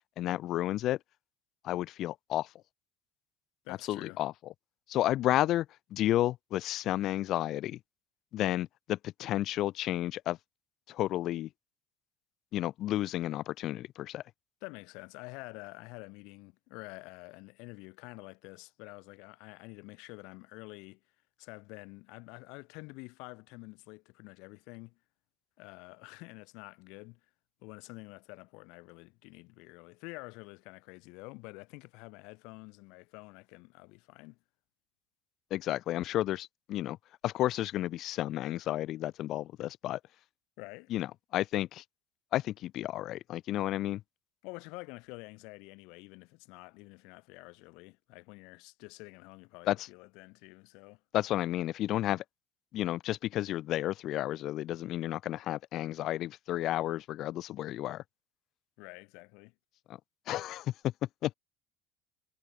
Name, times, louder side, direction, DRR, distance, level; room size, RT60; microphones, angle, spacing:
voice 1, 0.2-1.0 1.6-2.5 3.9-4.3 4.9-5.7 5.9-7.8 8.3-10.4 10.9-11.5 12.5-14.2 35.5-37.0 37.2-40.0 40.9-41.1 41.3-41.8 42.3-44.0 49.7-49.8 51.1-52.2 52.7-58.0 60.3-60.7 61.2-61.3, left 14 dB, 55° left, 0.7 m, -31 dB
voice 2, 3.6-4.2 14.6-21.0 21.4-25.0 25.6-27.2 27.6-34.4 40.6-40.9 44.4-51.0 58.8-59.5, left 27 dB, 75° left, 5.8 m, -48 dB
supercardioid pair, 120°, 0 cm